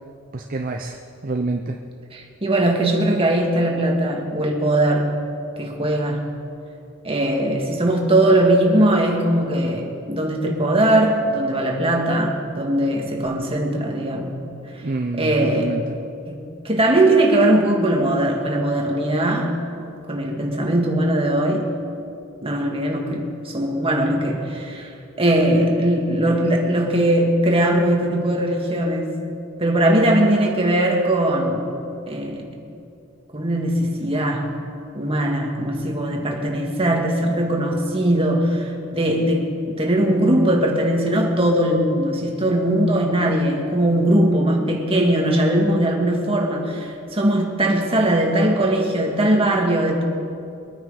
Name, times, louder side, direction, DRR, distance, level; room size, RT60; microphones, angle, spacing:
voice 1, 0.3-1.8 5.8-6.0 14.8-15.8, right 2 dB, 40° right, 0.7 m, -27 dB
voice 2, 2.1-5.2 5.6-6.3 7.0-14.4 15.1-15.8 16.3-19.6 20.1-21.7 22.4-29.2 29.6-31.8 32.1-32.6 33.3-34.5 34.9-50.0, right 1 dB, 25° right, 1.9 m, -20 dB
23.0 x 9.5 x 5.0 m
head